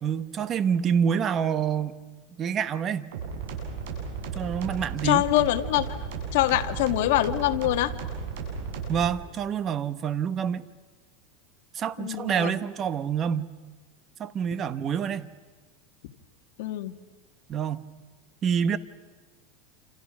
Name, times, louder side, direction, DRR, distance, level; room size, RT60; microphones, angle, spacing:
voice 1, 0.0-2.0 2.4-3.1 4.3-5.2 8.9-10.6 11.7-13.6 14.2-15.3 17.5-17.9 18.4-18.8, right 7 dB, 30° right, 1.0 m, -27 dB
sound 1, 3.1-9.1, right 5 dB, 85° right, 8.0 m, -34 dB
voice 2, 5.0-6.0 6.3-7.9 12.0-12.5 16.6-16.9, left 15 dB, 70° left, 1.6 m, -24 dB
28.5 x 27.5 x 6.2 m
supercardioid pair, 145°, 0 cm